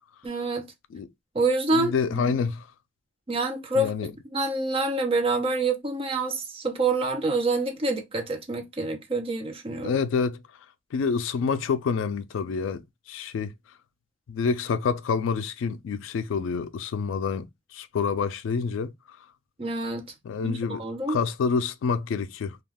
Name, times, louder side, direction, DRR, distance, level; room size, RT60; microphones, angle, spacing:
voice 1, 0.2-0.7 1.3-2.4 3.3-10.0 19.6-20.1 20.4-21.2, right 2 dB, 30° right, 0.5 m, -27 dB
voice 2, 1.7-2.7 3.8-4.1 9.8-10.4 10.9-12.8 13.1-13.5 14.3-17.5 17.7-18.9 20.2-20.8 21.1-22.6, left 5 dB, 75° left, 0.3 m, -27 dB
2.3 x 2.2 x 3.3 m
head